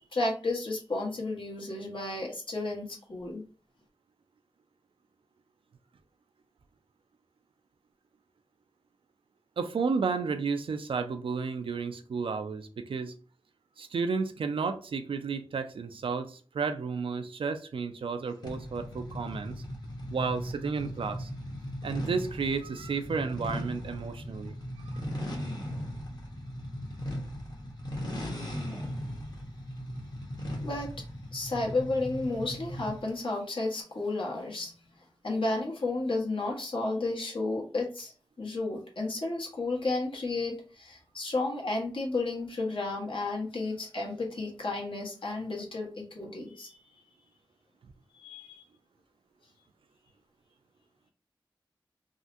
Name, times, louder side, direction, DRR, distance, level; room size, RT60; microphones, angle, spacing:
voice 1, 0.1-3.4 28.7-28.9 30.6-30.9 31.3-34.7 35.2-38.1 38.4-46.8 48.1-48.6, left 2 dB, 70° left, 1.2 m, -32 dB
voice 2, 9.6-13.1 13.8-19.6 20.1-21.3 21.8-24.5, right 5 dB, 80° right, 0.4 m, -32 dB
sound 1, 18.4-33.1, equal, 50° left, 1.1 m, -38 dB
3.6 x 2.2 x 2.6 m
cardioid pair, 50°, 9 cm